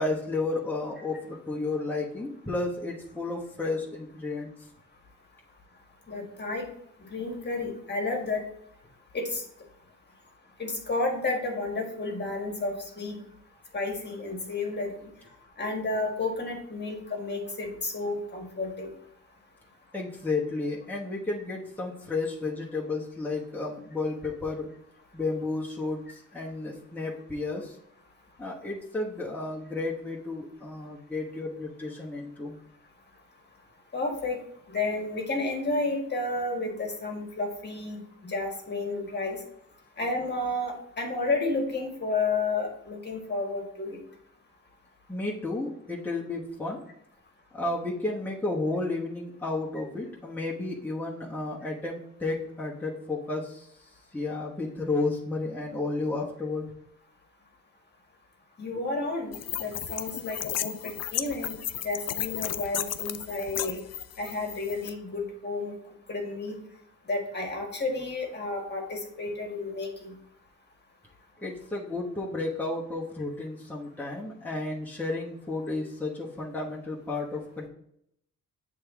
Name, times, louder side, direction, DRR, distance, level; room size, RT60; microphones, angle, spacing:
voice 1, 0.0-4.7 19.9-24.7 25.1-27.8 28.4-32.6 45.1-46.8 47.5-56.7 71.4-77.7, left 3 dB, 5° left, -4 dB, 1.2 m, -32 dB
voice 2, 6.1-6.7 7.0-8.4 9.1-9.4 10.6-13.2 13.7-15.1 15.6-18.9 33.9-34.4 34.7-39.4 40.0-44.0 58.6-61.5 61.8-63.8 64.2-65.7 66.1-66.6 67.1-70.2, left 3 dB, 35° left, 1 dB, 1.6 m, -31 dB
sound 1, 59.3-64.9, left 11 dB, 55° left, 0.5 m, -34 dB
7.6 x 3.5 x 3.6 m, 0.75 s
cardioid pair, 85°, 32 cm